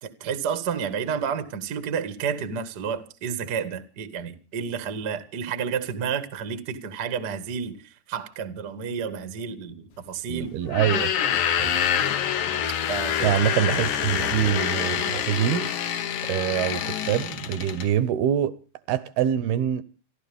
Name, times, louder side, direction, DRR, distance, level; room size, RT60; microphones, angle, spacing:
voice 1, 0.0-10.5 10.8-11.0 12.9-13.5 14.0-14.3, right 7 dB, 60° right, 1.0 m, -31 dB
voice 2, 10.3-11.1 11.6-11.8 13.2-15.7 16.3-18.6 18.9-19.8, right 10 dB, 75° right, 2.5 m, -25 dB
sound 1, 10.7-17.9, left 9 dB, 65° left, 2.1 m, -26 dB
29.5 x 12.0 x 3.5 m
omnidirectional pair, 5.0 m